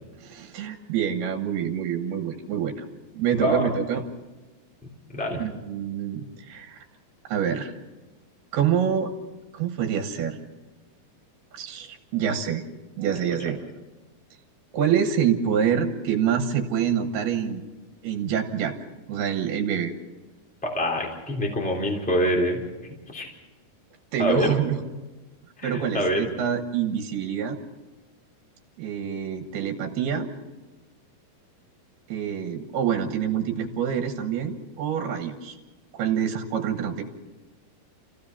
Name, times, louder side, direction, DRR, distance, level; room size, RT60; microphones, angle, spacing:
voice 1, 0.2-2.8 3.1-4.0 5.3-6.9 7.3-7.7 8.5-9.1 9.5-10.4 11.5-12.6 13.0-13.6 14.7-17.6 18.0-18.8 19.1-19.9 24.1-24.8 25.6-27.6 28.8-30.3 32.1-35.6 35.9-37.0, right 8 dB, 80° right, 5 dB, 3.3 m, -26 dB
voice 2, 3.3-3.7 5.1-5.4 13.4-13.5 20.6-22.6 23.1-23.3 24.2-24.6 25.6-26.3, equal, ahead, -1 dB, 3.1 m, -25 dB
28.5 x 16.0 x 5.7 m, 1.2 s
omnidirectional pair, 4.6 m